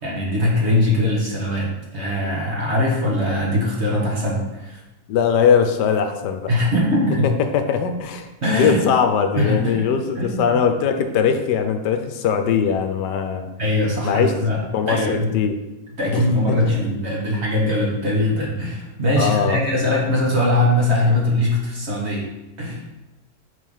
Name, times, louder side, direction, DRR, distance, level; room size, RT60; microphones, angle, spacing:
voice 1, 0.0-4.8 6.5-7.3 8.4-8.8 9.4-9.8 10.2-10.6 13.6-14.6 14.9-15.3 16.0-22.3 22.6-22.8, left 1 dB, 40° right, -4 dB, 2.0 m, -21 dB
voice 2, 5.1-6.5 7.2-13.5 14.0-15.5 16.1-16.7 19.2-19.6, left 7 dB, 80° left, 7 dB, 1.3 m, -21 dB
6.0 x 5.0 x 5.5 m, 1.0 s
omnidirectional pair, 1.8 m